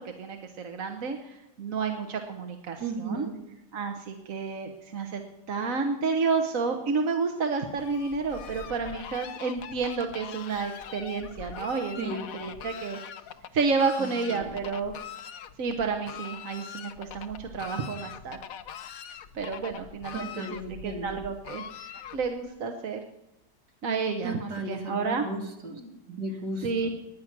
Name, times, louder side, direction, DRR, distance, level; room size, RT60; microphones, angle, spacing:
voice 1, 0.0-3.3 3.7-5.2 5.5-13.0 13.5-14.9 15.6-18.4 19.3-23.0 23.8-25.3 25.7-26.0 26.6-26.9, right 4 dB, 55° right, 4 dB, 1.4 m, -30 dB
voice 2, 2.8-3.4 12.0-12.2 14.0-14.5 20.1-21.2 24.2-25.8 26.1-26.9, right 2 dB, 75° right, 2 dB, 2.9 m, -35 dB
Fowl, 7.7-22.5, left 8 dB, 60° left, 1.1 m, -43 dB
19.5 x 9.5 x 6.0 m, 0.92 s
omnidirectional pair, 1.8 m